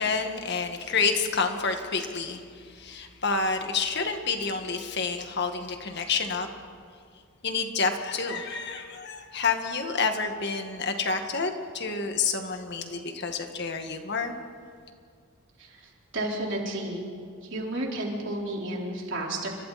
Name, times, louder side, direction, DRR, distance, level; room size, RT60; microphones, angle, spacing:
voice 1, 0.0-6.5 7.4-14.3, left 4 dB, 55° left, 5 dB, 1.9 m, -29 dB
voice 2, 16.1-17.0 17.5-19.5, right 1 dB, 60° right, -2 dB, 4.4 m, -31 dB
30.0 x 25.0 x 4.3 m, 2.1 s
head